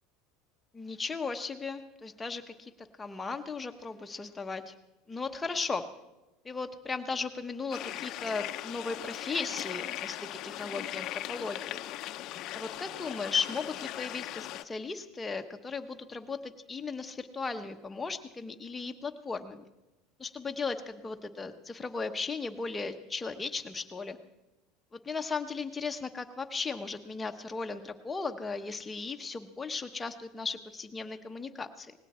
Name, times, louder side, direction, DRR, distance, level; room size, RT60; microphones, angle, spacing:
voice 1, 0.7-4.7 5.1-5.9 6.4-11.8 12.5-19.7 20.2-24.2 24.9-31.9, left 4 dB, 15° left, 5 dB, 1.0 m, -36 dB
sound 1, 7.7-14.6, left 14 dB, 50° left, 0.6 m, -39 dB
19.0 x 16.5 x 4.4 m, 1.0 s
supercardioid pair, 135°, 0 cm